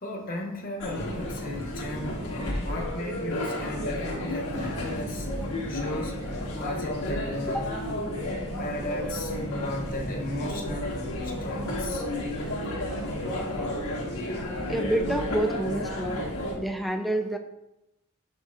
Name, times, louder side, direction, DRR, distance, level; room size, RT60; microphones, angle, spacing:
voice 1, 0.0-5.3 5.6-6.2 6.5-7.8 8.6-9.3 9.6-11.0 11.4-12.0, left 1 dB, 40° left, 1 dB, 1.0 m, -35 dB
sound 1, 0.8-16.6, left 1 dB, 85° left, 1.4 m, -32 dB
voice 2, 14.7-16.2 16.6-17.4, right 1 dB, ahead, 5 dB, 0.3 m, -28 dB
6.4 x 6.3 x 2.4 m, 0.91 s
head